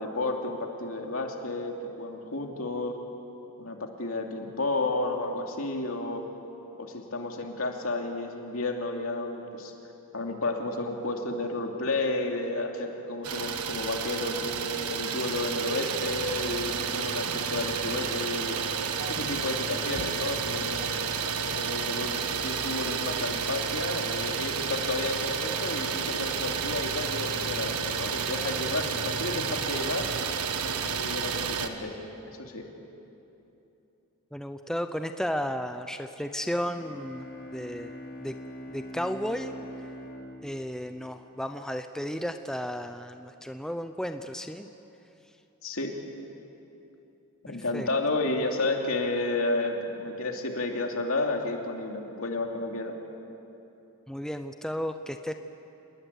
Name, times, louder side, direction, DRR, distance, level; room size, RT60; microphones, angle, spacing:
voice 1, 0.0-3.0 3.6-6.2 6.8-9.7 10.1-18.6 19.1-21.0 21.5-30.1 30.6-31.9 32.4-32.7 45.6-45.9 47.4-52.9, left 2 dB, 70° left, 2 dB, 2.7 m, -32 dB
Idling, 13.2-31.7, right 6 dB, 90° right, 1.5 m, -31 dB
voice 2, 34.3-37.3 37.5-38.0 38.2-38.3 38.7-39.5 40.4-44.7 47.5-47.9 54.1-55.3, equal, 5° left, 7 dB, 0.6 m, -33 dB
Bowed string instrument, 36.7-41.6, equal, 35° left, 3.0 m, -43 dB
28.0 x 20.5 x 8.2 m, 3.0 s
head